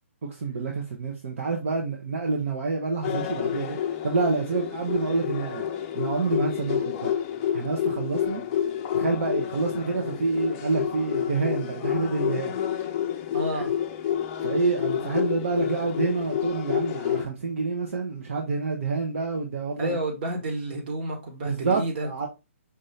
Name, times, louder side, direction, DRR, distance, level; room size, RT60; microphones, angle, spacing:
voice 1, 0.2-3.8 4.0-5.7 5.9-7.1 7.5-8.4 8.9-12.6 13.5-13.6 14.4-20.0 21.4-22.3, right 4 dB, 65° right, 1.0 m, -28 dB
sound 1, 3.0-17.2, left 9 dB, 30° left, 0.6 m, -29 dB
voice 2, 13.3-13.7 19.8-22.3, right 1 dB, 45° right, 1.6 m, -31 dB
5.2 x 2.8 x 3.2 m
hypercardioid pair, 150°, 7 cm